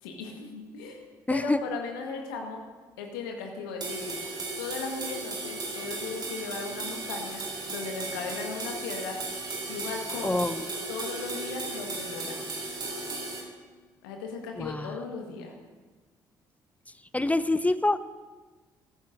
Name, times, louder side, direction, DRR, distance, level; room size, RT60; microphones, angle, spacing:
voice 1, 0.0-1.0 1.3-2.6 3.0-4.3 4.6-9.2 9.7-10.4 10.9-12.4 14.0-15.5, left 4 dB, 75° left, 2 dB, 1.6 m, -37 dB
voice 2, 1.3-1.6 10.2-10.7 14.6-15.0 17.1-18.0, left 2 dB, 10° left, 14 dB, 0.5 m, -26 dB
sound 1, 3.8-13.4, right 3 dB, 40° right, 3.4 m, -36 dB
17.0 x 14.5 x 2.7 m, 1.3 s
figure-of-eight pair, 45°, 11 cm